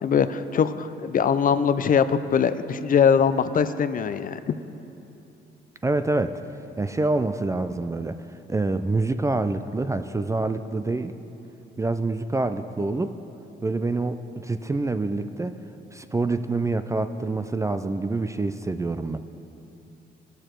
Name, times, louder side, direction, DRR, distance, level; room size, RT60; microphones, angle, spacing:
voice 1, 0.0-4.5, left 7 dB, 45° left, 12 dB, 0.5 m, -22 dB
voice 2, 5.8-6.4 6.8-8.2 8.5-11.2 11.8-13.2 13.6-15.6 15.9-19.2, right 3 dB, 15° right, 10 dB, 0.3 m, -26 dB
15.0 x 6.7 x 4.5 m, 2.9 s
cardioid pair, 90°, 20 cm